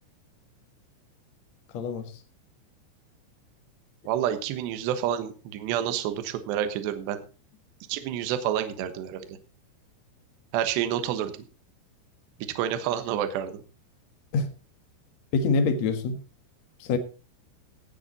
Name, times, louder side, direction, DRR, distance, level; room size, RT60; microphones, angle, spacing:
voice 1, 1.7-2.1 14.3-14.5 15.3-16.2 16.8-17.0, left 4 dB, 70° left, 7 dB, 1.7 m, -25 dB
voice 2, 4.1-7.2 7.9-9.4 10.5-11.3 12.4-13.6, right 10 dB, 70° right, 10 dB, 3.0 m, -29 dB
17.5 x 8.2 x 4.2 m, 0.33 s
omnidirectional pair, 5.7 m